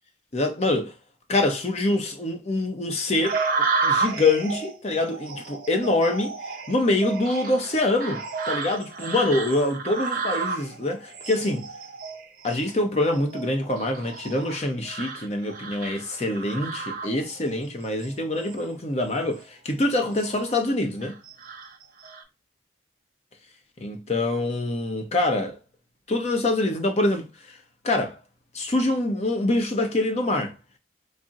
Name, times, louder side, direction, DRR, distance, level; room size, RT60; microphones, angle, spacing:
voice 1, 0.3-0.9 1.3-3.4 3.8-6.3 6.7-11.7 12.4-21.2 23.8-25.6 26.1-27.6 27.8-28.2 28.5-30.5, left 2 dB, 35° left, 0.6 m, -25 dB
sound 1, 3.2-17.5 18.0-18.6 19.1-19.4 19.9-20.6 21.0-22.2, right 4 dB, 50° right, 0.6 m, -32 dB
4.0 x 2.0 x 3.6 m
head